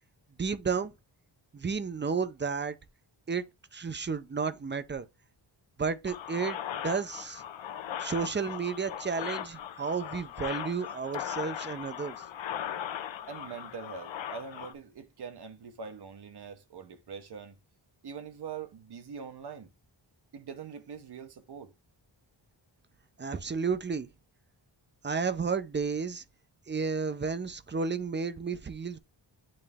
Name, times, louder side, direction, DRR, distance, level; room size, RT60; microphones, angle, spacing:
voice 1, 0.4-0.9 1.5-2.8 3.3-3.4 3.7-5.1 5.8-7.4 8.0-12.2 23.2-24.1 25.0-26.2 26.7-29.0, right 5 dB, 25° right, 0.5 m, -32 dB
sound 1, 6.0-14.7, left 10 dB, 75° left, 0.7 m, -38 dB
voice 2, 13.3-17.5 18.0-19.7 20.3-21.7, right 6 dB, 60° right, 0.8 m, -43 dB
8.8 x 3.2 x 3.5 m
wide cardioid pair, 145°, 45 cm